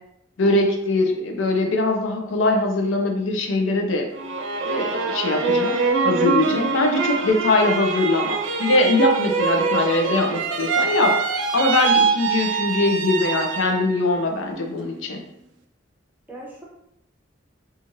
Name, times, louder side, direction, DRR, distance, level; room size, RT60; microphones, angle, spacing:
voice 1, 0.4-4.1 4.6-5.8 6.0-11.2 11.5-15.2, left 2 dB, 80° left, 3 dB, 0.5 m, -22 dB
sound 1, 4.1-14.0 14.4-15.1, right 5 dB, 70° right, 0.4 m, -24 dB
voice 2, 6.8-7.5 16.3-16.6, right 1 dB, 10° right, -4 dB, 0.6 m, -41 dB
3.0 x 2.4 x 2.7 m, 0.78 s
head